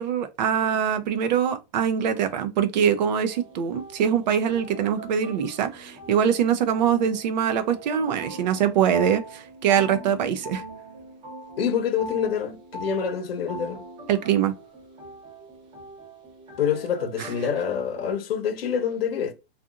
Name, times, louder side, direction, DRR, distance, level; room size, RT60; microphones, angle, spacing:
voice 1, 0.0-10.6 14.1-14.5 17.2-17.3, right 8 dB, 45° right, 0.6 m, -23 dB
sound 1, 3.3-18.1, right 1 dB, 15° right, 0.8 m, -43 dB
voice 2, 11.6-13.8 16.6-19.3, left 7 dB, 70° left, 0.9 m, -26 dB
2.8 x 2.4 x 2.4 m
hypercardioid pair, 150°, 30 cm